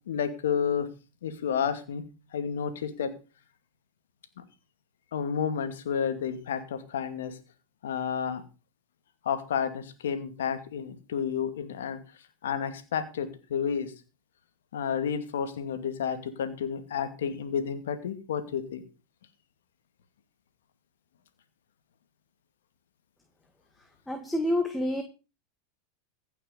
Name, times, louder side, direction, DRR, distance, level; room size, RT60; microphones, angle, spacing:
voice 1, 0.1-0.9 1.2-2.0 2.3-3.1 5.1-7.4 7.8-8.4 9.2-12.0 12.4-13.9 14.7-18.8, left 7 dB, 80° left, 10 dB, 2.4 m, -31 dB
voice 2, 24.1-25.0, left 1 dB, 5° left, 5 dB, 1.9 m, -28 dB
16.0 x 6.7 x 6.7 m, 0.33 s
hypercardioid pair, 105°, 0 cm